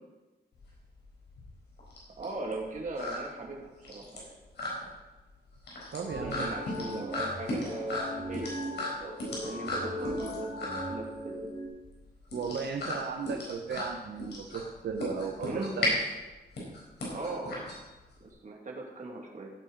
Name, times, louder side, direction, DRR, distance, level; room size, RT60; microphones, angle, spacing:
sound 1, 0.5-18.3, left 1 dB, 85° left, 4.3 m, -36 dB
voice 1, 2.2-4.4 6.0-11.3 15.4-15.8 17.1-17.6 18.2-19.5, right 2 dB, 50° right, -1 dB, 2.3 m, -40 dB
voice 2, 5.9-6.5 6.9-7.1 12.3-15.9, right 5 dB, 85° right, 3 dB, 0.9 m, -36 dB
sound 2, 6.1-11.7, equal, 40° left, 3.4 m, -38 dB
15.5 x 8.6 x 4.0 m, 1.1 s
wide cardioid pair, 170°, 17 cm